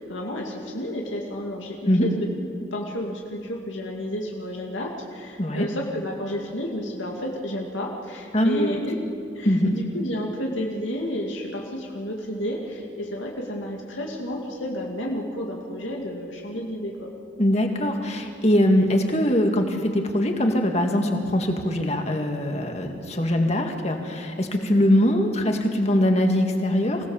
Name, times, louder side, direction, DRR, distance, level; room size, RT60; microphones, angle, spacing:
voice 1, 0.0-2.2 2.7-9.0 9.3-17.1, equal, 90° left, -1 dB, 2.4 m, -31 dB
voice 2, 8.3-8.8 9.5-9.7 17.4-27.1, left 1 dB, 35° left, 3 dB, 2.0 m, -22 dB
25.5 x 17.0 x 7.3 m, 2.4 s
head